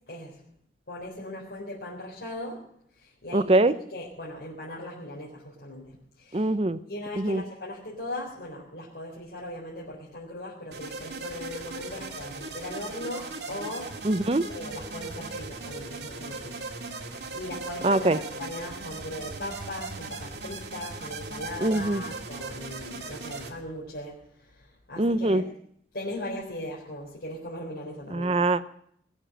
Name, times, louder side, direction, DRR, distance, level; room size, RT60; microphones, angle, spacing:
voice 1, 0.1-0.4 0.9-2.6 3.0-3.5 3.9-6.5 6.9-14.0 14.5-16.7 17.1-25.4 25.9-28.4, left 1 dB, 65° left, -6 dB, 4.2 m, -39 dB
voice 2, 3.3-3.7 6.3-6.8 7.2-7.4 14.0-14.4 17.8-18.2 21.6-22.0 25.0-25.4 28.1-28.6, right 2 dB, 35° right, 13 dB, 0.7 m, -23 dB
sound 1, 10.7-23.5, right 3 dB, 70° right, 2.1 m, -38 dB
20.5 x 7.3 x 8.7 m, 0.68 s
head